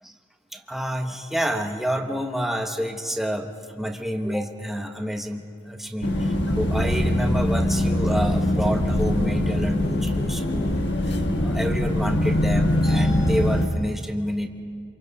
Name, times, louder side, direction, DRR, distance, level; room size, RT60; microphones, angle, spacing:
voice 1, 0.5-14.5, equal, ahead, 3 dB, 1.2 m, -29 dB
sound 1, 6.0-13.7, left 1 dB, 65° left, 1.5 m, -22 dB
28.0 x 26.5 x 4.1 m, 2.2 s
head